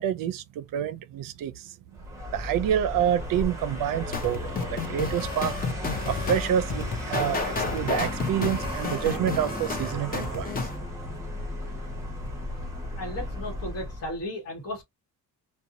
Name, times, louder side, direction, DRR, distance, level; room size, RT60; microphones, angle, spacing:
voice 1, 0.0-1.8 2.3-4.4 4.7-5.6 6.1-10.5, right 10 dB, 70° right, 0.5 m, -28 dB
Vehicle, 1.9-14.2, left 1 dB, 10° right, 1.0 m, -35 dB
sound 1, 4.1-10.8, left 4 dB, 25° left, 0.6 m, -31 dB
voice 2, 13.0-14.8, left 1 dB, 45° left, 1.2 m, -35 dB
2.6 x 2.2 x 2.5 m
cardioid pair, 150°, 35 cm